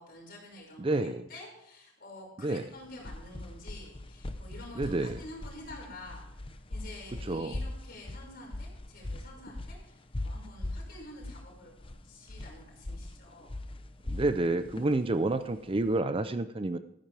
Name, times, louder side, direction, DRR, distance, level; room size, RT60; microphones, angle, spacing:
voice 1, 0.0-6.4 6.7-13.6, left 1 dB, 45° left, -1 dB, 5.8 m, -49 dB
voice 2, 0.8-1.2 2.4-2.6 4.8-5.2 7.3-7.6 14.0-16.8, right 2 dB, 25° right, 11 dB, 0.5 m, -29 dB
sound 1, 2.7-16.0, left 1 dB, 25° left, 0.7 m, -40 dB
14.5 x 14.0 x 3.4 m, 0.81 s
head